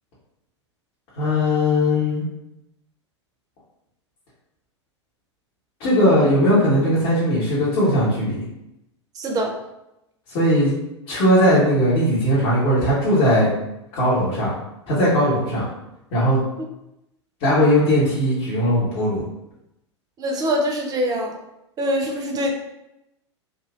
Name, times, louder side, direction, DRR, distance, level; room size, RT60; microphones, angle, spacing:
voice 1, 1.2-2.2 5.8-8.4 10.3-10.7 11.1-13.5 13.9-14.5 14.9-15.6 16.1-16.4 17.4-19.2, equal, 50° left, -10 dB, 1.3 m, -18 dB
voice 2, 9.2-9.5 20.2-21.4 21.8-22.5, equal, 25° right, 2 dB, 0.6 m, -23 dB
3.8 x 2.5 x 2.4 m, 0.86 s
figure-of-eight pair, 90°, 15 cm